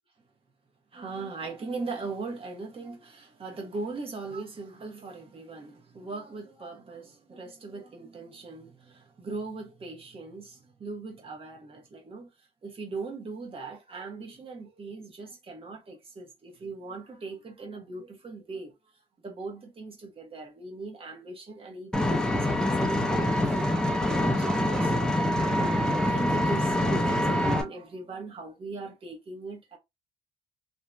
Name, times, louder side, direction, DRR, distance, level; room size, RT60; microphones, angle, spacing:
voice 1, 0.9-12.3 12.6-29.8, right 3 dB, 35° right, 1.1 m, -39 dB
Vehicle, 21.9-27.6, left 1 dB, 5° left, 0.6 m, -25 dB
2.7 x 2.6 x 2.3 m
cardioid pair, 110°, 17 cm